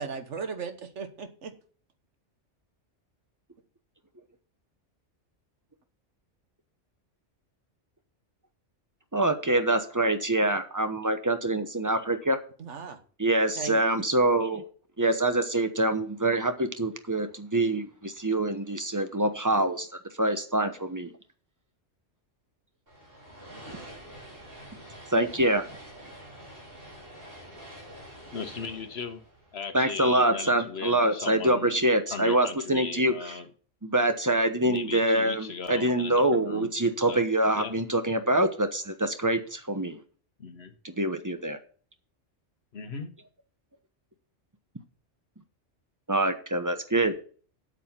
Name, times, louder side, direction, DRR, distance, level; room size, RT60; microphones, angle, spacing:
voice 1, 0.0-1.5 12.6-13.0 13.6-13.8, right 5 dB, 75° right, 8 dB, 1.5 m, -36 dB
voice 2, 9.1-12.4 13.2-14.6 15.0-19.9 20.2-21.1 23.7-23.8 25.1-25.6 29.7-33.3 33.8-40.0 40.8-41.6 46.1-47.2, right 1 dB, 15° right, 8 dB, 0.9 m, -25 dB
sound 1, 22.9-30.3, equal, 50° right, 4.0 m, -47 dB
voice 3, 28.3-29.2 29.5-33.5 34.6-36.7 37.1-37.3 37.5-37.8 40.4-40.7 42.7-43.1, left 5 dB, 60° left, 8 dB, 1.3 m, -37 dB
8.4 x 7.8 x 5.8 m, 0.43 s
omnidirectional pair, 1.2 m